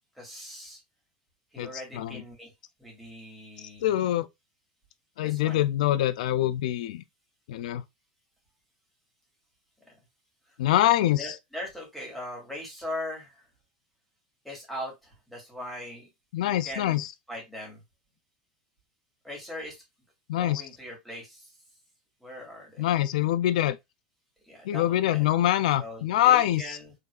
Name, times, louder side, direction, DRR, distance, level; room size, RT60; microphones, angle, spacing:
voice 1, 0.1-0.8 1.5-2.5 2.8-3.9 5.2-5.6 9.9-10.0 11.2-13.5 14.4-16.1 16.4-17.8 19.2-19.8 20.3-21.5 22.2-22.9 24.4-25.3 25.8-26.9, left 1 dB, ahead, 2.5 m, -40 dB
voice 2, 1.6-2.2 3.6-4.3 5.2-7.0 7.5-7.8 10.6-11.4 16.3-17.1 20.3-20.6 22.8-23.8 24.7-26.8, left 13 dB, 75° left, 0.4 m, -25 dB
5.1 x 3.8 x 2.3 m
supercardioid pair, 160°, 4 cm